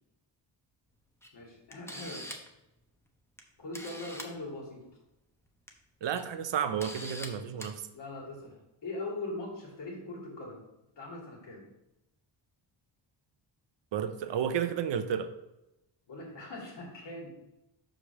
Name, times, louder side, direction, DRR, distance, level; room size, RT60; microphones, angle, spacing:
Camera, 1.2-1.3 1.7-2.5 3.4-3.5 3.7-4.3 5.5-5.7 6.1-6.2 6.8-7.3 7.6-7.7, equal, 5° left, 0.9 m, -42 dB
voice 1, 1.3-2.3 3.6-4.8 7.9-10.6 11.0-11.6 16.1-17.3, left 2 dB, 65° left, -3 dB, 3.0 m, -41 dB
voice 2, 6.0-7.8 13.9-15.3, right 8 dB, 65° right, 9 dB, 0.7 m, -31 dB
5.2 x 5.0 x 6.2 m, 0.92 s
cardioid pair, 90°, 46 cm